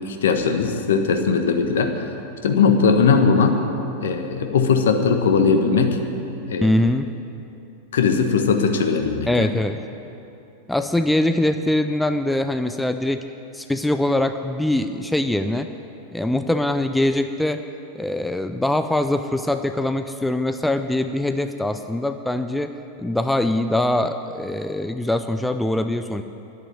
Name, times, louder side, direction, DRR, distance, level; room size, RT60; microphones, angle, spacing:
voice 1, 0.1-1.9 2.4-3.6 4.0-6.0 6.5-6.7 7.9-9.5, left 5 dB, 60° left, 5 dB, 1.2 m, -19 dB
voice 2, 6.6-7.1 9.3-9.8 10.7-13.2 13.5-15.7 16.1-17.6 17.9-22.7 23.0-26.2, left 1 dB, 5° left, 8 dB, 0.5 m, -22 dB
11.0 x 9.6 x 9.3 m, 2.8 s
figure-of-eight pair, 90°, 0 cm